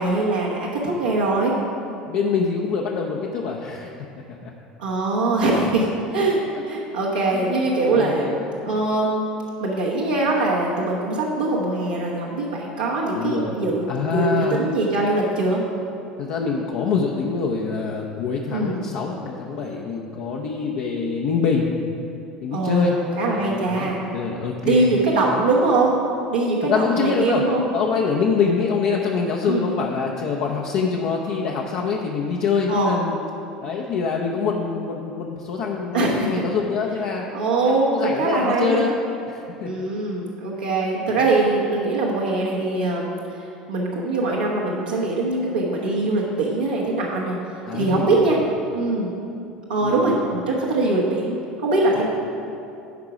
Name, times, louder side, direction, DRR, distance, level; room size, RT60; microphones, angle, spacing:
voice 1, 0.0-1.5 4.8-8.3 8.7-9.2 9.6-15.6 18.5-18.7 22.5-24.0 24.6-26.0 26.3-27.6 29.5-29.7 32.7-32.9 35.9-36.3 37.3-38.8 39.6-43.1 43.7-47.4 47.7-48.4 48.7-49.1 49.7-52.0, right 2 dB, 85° right, -6 dB, 1.1 m, -22 dB
voice 2, 2.0-3.9 4.4-4.5 7.3-7.6 7.9-8.8 13.2-13.6 13.9-14.6 16.2-21.7 22.4-23.0 23.3-24.9 26.6-27.4 27.7-33.2 33.6-37.3 37.6-39.0 39.3-39.7 41.1-41.2 47.6-48.3 49.8-50.1, left 5 dB, 60° left, -1 dB, 0.7 m, -25 dB
12.0 x 4.8 x 4.9 m, 2.7 s
hypercardioid pair, 75°, 4 cm